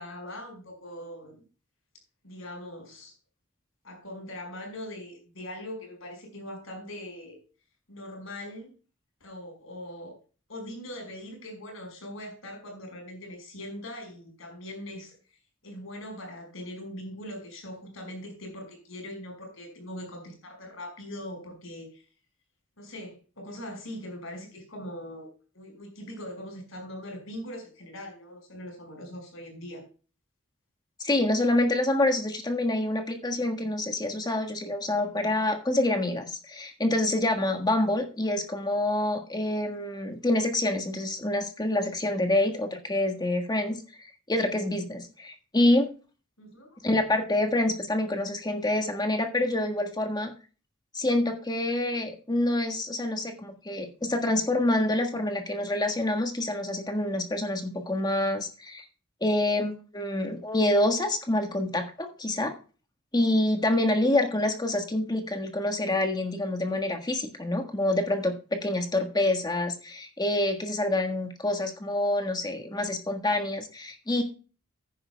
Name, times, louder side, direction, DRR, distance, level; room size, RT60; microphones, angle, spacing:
voice 1, 0.0-1.5 2.2-3.1 3.8-7.4 7.9-8.7 9.2-10.1 10.5-15.1 15.6-22.0 22.8-25.3 25.5-29.8 46.4-46.7, left 1 dB, 75° left, 4 dB, 5.2 m, -41 dB
voice 2, 31.0-45.9 46.8-50.3 50.9-58.8 59.2-62.5 63.1-74.2, left 1 dB, 20° left, 4 dB, 1.5 m, -27 dB
14.5 x 10.0 x 2.2 m, 0.35 s
head